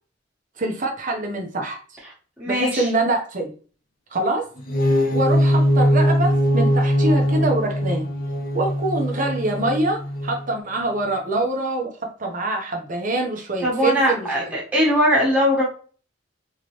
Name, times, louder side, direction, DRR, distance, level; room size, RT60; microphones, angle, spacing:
voice 1, 0.6-1.8 2.5-3.5 4.1-4.5 5.1-8.1 8.5-14.5, right 2 dB, 45° right, 2 dB, 1.0 m, -25 dB
voice 2, 2.4-2.9 13.6-15.6, equal, 5° right, -5 dB, 1.4 m, -20 dB
sound 1, 4.6-10.5, equal, 50° left, 0.6 m, -21 dB
3.7 x 3.1 x 3.1 m, 0.40 s
head